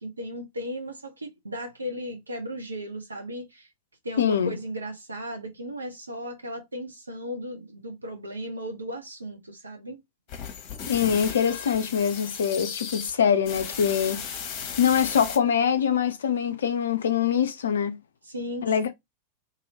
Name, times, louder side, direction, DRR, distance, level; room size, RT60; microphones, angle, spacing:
voice 1, 0.0-3.7 4.0-10.0 18.2-18.7, equal, 80° right, 0.5 m, -36 dB
voice 2, 4.2-4.5 10.9-14.2 14.8-18.0 18.6-18.9, left 8 dB, 65° left, 0.3 m, -24 dB
sound 1, 10.3-13.1 13.5-15.4, left 7 dB, 40° left, 0.8 m, -36 dB
2.7 x 2.6 x 2.7 m
figure-of-eight pair, 90°, 0 cm